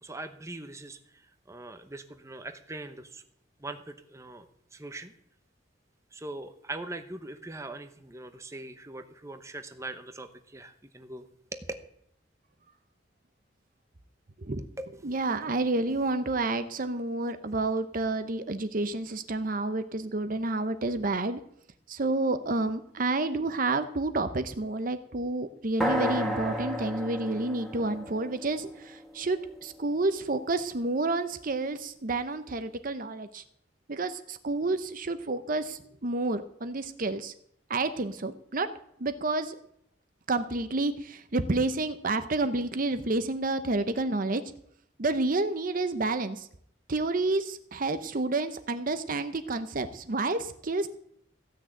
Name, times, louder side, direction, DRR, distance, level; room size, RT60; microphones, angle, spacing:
voice 1, 0.0-3.2 3.6-4.5 4.7-5.1 6.1-11.3 11.5-11.7 14.8-14.9, right 2 dB, 15° right, 8 dB, 1.0 m, -41 dB
voice 2, 15.0-21.4 21.9-33.4 33.9-37.3 37.7-38.7 39.0-39.6 40.3-44.4 45.0-46.5 46.9-50.9, right 2 dB, 50° right, 10 dB, 0.8 m, -29 dB
sound 1, 25.8-29.7, equal, ahead, 2.0 m, -33 dB
15.0 x 6.4 x 8.8 m, 0.69 s
head